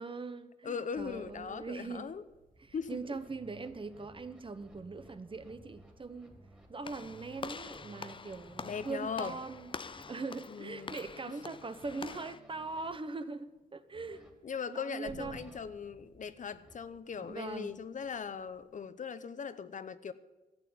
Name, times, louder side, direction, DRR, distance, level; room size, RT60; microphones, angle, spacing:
voice 1, 0.0-2.1 2.6-6.3 6.7-14.2 14.7-15.6 17.2-17.8, right 3 dB, 35° right, 0.9 m, -41 dB
voice 2, 0.6-2.2 2.7-3.2 8.6-9.4 10.5-10.9 14.4-20.1, left 6 dB, 55° left, 0.8 m, -39 dB
sound 1, 0.9-18.8, right 1 dB, 65° right, 2.9 m, -61 dB
sound 2, 2.8-12.9 13.9-14.4 15.2-15.7 16.4-16.8, right 2 dB, 5° right, 3.0 m, -59 dB
Walk footsteps / Slam, 6.8-12.4, left 5 dB, 35° left, 0.5 m, -46 dB
13.0 x 8.0 x 8.6 m
wide cardioid pair, 100°, 15 cm